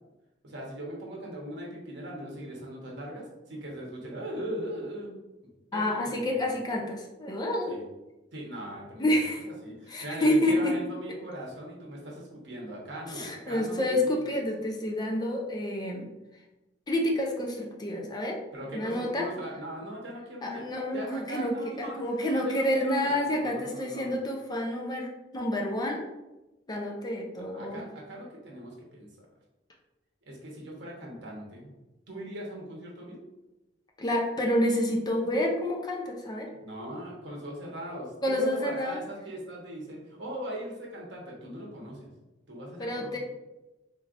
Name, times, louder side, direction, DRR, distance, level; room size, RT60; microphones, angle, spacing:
voice 1, 0.4-5.2 5.7-6.2 7.7-7.8 8.3-9.2 9.4-13.9 14.3-14.4 18.5-22.0 22.3-24.1 27.5-29.1 30.3-31.7 32.1-33.2 36.6-42.1 42.5-43.2, right 1 dB, 70° right, -2 dB, 1.1 m, -39 dB
voice 2, 5.7-7.8 9.0-9.5 9.9-10.9 13.1-16.1 16.9-18.4 18.7-19.3 20.4-25.1 25.3-26.0 26.7-27.8 34.0-36.5 38.2-39.0 42.8-43.2, left 1 dB, 20° left, 0 dB, 0.5 m, -28 dB
3.9 x 3.2 x 2.5 m, 1.0 s
head